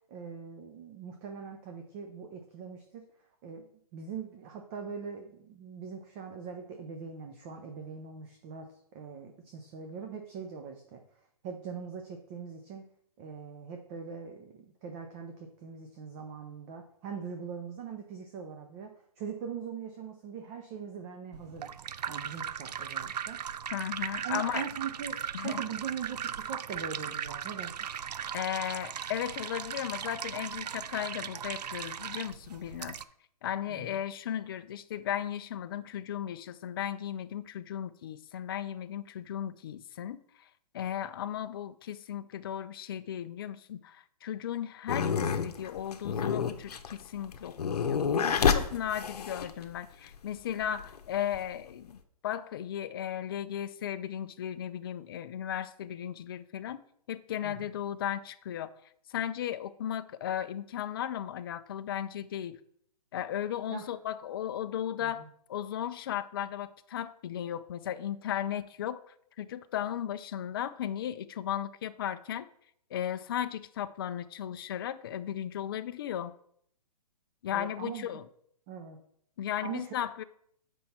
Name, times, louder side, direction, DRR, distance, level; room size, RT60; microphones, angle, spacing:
voice 1, 0.1-3.0 3.4-3.7 3.9-11.0 11.4-12.9 13.2-21.7 22.1-23.4 24.2-25.2 25.4-27.8 33.7-34.0 57.4-57.7 63.7-63.9 65.0-65.3 77.5-78.2 78.7-79.0 79.6-79.9, right 6 dB, 20° right, 0.5 m, -41 dB
sound 1, 21.3-33.0, right 8 dB, 90° right, 0.5 m, -38 dB
voice 2, 23.7-24.6 25.3-25.6 28.3-33.0 33.4-56.8 57.1-58.7 59.1-62.6 63.1-72.5 72.9-76.3 77.4-78.2 79.4-80.2, left 10 dB, 35° left, 0.3 m, -36 dB
sound 2, 44.9-49.8 50.5-51.4, left 6 dB, 75° left, 0.9 m, -29 dB
7.7 x 5.3 x 4.2 m
hypercardioid pair, 160°, 20 cm